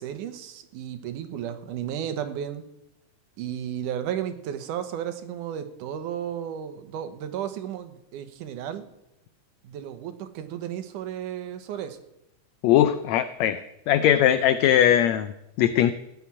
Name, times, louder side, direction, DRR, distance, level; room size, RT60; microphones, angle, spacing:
voice 1, 0.0-2.6 3.4-8.9 9.6-12.0, right 9 dB, 85° right, 9 dB, 2.6 m, -33 dB
voice 2, 12.6-13.6 13.9-15.3 15.6-15.9, left 11 dB, 75° left, 11 dB, 1.7 m, -20 dB
15.0 x 6.0 x 9.8 m, 0.87 s
omnidirectional pair, 3.5 m